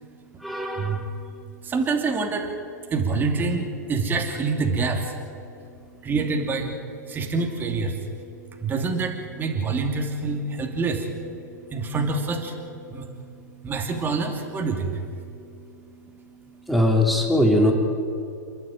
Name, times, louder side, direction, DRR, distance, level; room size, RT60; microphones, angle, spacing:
voice 1, 0.4-1.0 16.7-17.7, left 1 dB, ahead, 1 dB, 3.6 m, -20 dB
voice 2, 1.6-2.5 2.9-5.2 6.0-6.8 7.1-8.1 8.6-11.2 11.7-12.6 12.9-13.2 13.6-15.1 15.9-16.2, right 4 dB, 20° right, 2 dB, 2.8 m, -26 dB
28.5 x 11.5 x 9.3 m, 2.6 s
hypercardioid pair, 120°, 10 cm